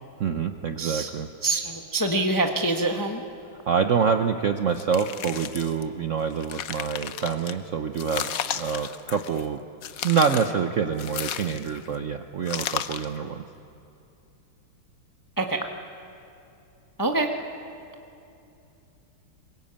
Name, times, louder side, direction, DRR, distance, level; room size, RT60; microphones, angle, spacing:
voice 1, 0.2-1.3 3.7-9.6 10.0-13.4, right 6 dB, 70° right, 7 dB, 0.7 m, -26 dB
voice 2, 0.8-1.1 1.4-3.2 15.4-15.7 17.0-17.3, right 2 dB, 15° left, 4 dB, 0.8 m, -25 dB
sound 1, 4.8-5.8 6.3-7.5 8.0-9.5 9.8-10.6 11.0-11.9 12.5-13.1, left 9 dB, 65° left, 0.9 m, -33 dB
23.0 x 20.5 x 8.8 m, 2.7 s
omnidirectional pair, 2.3 m